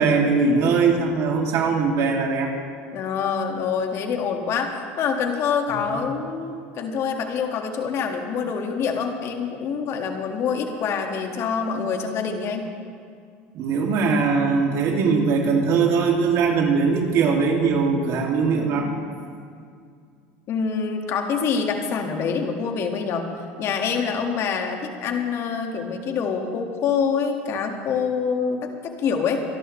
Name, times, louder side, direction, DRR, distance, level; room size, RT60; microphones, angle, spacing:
voice 1, 0.0-2.5 5.9-6.0 13.5-18.9, right 5 dB, 60° right, 1 dB, 2.5 m, -21 dB
voice 2, 2.9-12.7 20.5-23.3 23.6-29.4, left 6 dB, 50° left, 4 dB, 1.9 m, -26 dB
24.5 x 12.5 x 3.3 m, 2.2 s
supercardioid pair, 100°, 6 cm